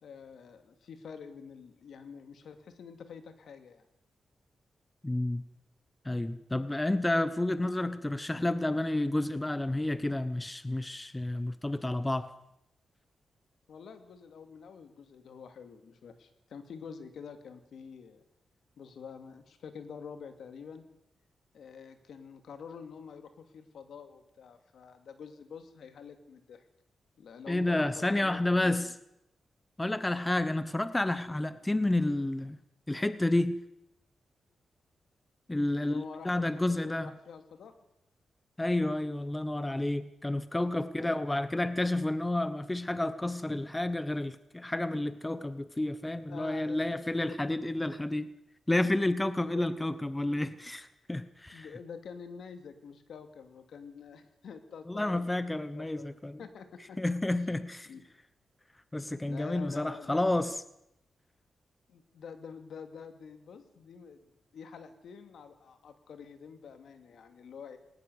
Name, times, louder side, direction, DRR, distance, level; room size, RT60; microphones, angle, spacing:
voice 1, 0.0-3.9 13.7-18.2 18.8-20.8 21.5-26.7 27.2-28.9 35.8-37.7 41.0-41.1 46.3-47.5 49.5-49.7 51.5-56.1 56.4-57.3 57.8-58.0 59.2-60.2 61.9-64.2 64.5-67.8, left 6 dB, 80° left, 8 dB, 2.6 m, -47 dB
voice 2, 5.0-5.4 6.0-12.3 27.5-28.9 29.8-32.6 32.9-33.6 35.5-37.1 38.6-48.3 48.7-51.7 54.9-56.4 57.0-57.9 58.9-60.5, left 1 dB, 15° left, 13 dB, 1.0 m, -30 dB
19.5 x 19.0 x 8.2 m, 0.83 s
wide cardioid pair, 115°, 0 cm